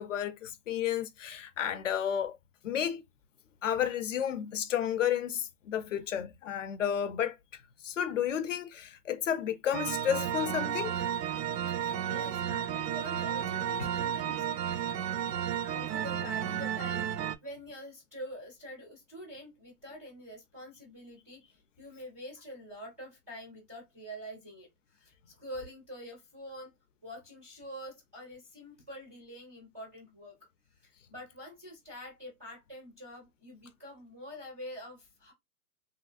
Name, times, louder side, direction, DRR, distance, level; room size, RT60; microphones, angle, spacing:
voice 1, 0.0-2.4 2.6-3.0 3.6-7.4 7.8-10.9 13.8-13.9, left 9 dB, 50° left, 0.5 m, -32 dB
sound 1, 9.7-17.4, right 9 dB, 80° right, 0.6 m, -33 dB
voice 2, 11.7-14.8 15.6-17.1 17.4-26.7 27.0-30.4 30.8-35.3, equal, 10° right, 0.4 m, -46 dB
3.0 x 2.5 x 2.4 m
hypercardioid pair, 145°, 48 cm